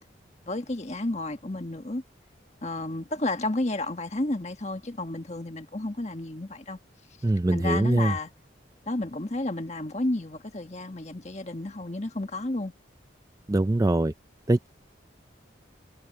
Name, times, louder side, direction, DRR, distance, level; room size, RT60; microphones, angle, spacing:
voice 1, 0.4-2.0 2.6-6.8 7.5-8.3 8.9-12.7, left 2 dB, 35° left, 1.5 m, -31 dB
voice 2, 7.2-8.2 13.5-14.1 14.5-14.7, right 2 dB, 20° right, 0.4 m, -23 dB
head